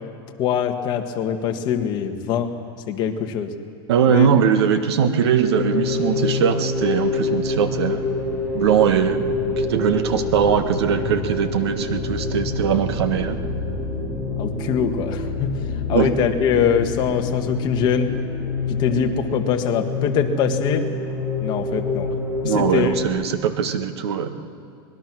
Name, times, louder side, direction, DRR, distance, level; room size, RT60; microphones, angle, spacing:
voice 1, 0.4-2.5 2.9-3.5 4.1-4.3 14.4-15.5 15.9-18.1 18.7-20.9 21.4-22.1 22.4-23.0, left 8 dB, 35° left, 5 dB, 1.6 m, -23 dB
voice 2, 3.9-8.1 8.5-9.2 9.6-13.4 15.9-16.1 22.4-24.4, right 8 dB, 80° right, 8 dB, 1.7 m, -21 dB
sound 1, 5.4-23.1, left 3 dB, 10° right, 6.2 m, -26 dB
24.5 x 20.5 x 6.2 m, 2.4 s
supercardioid pair, 155°, 13 cm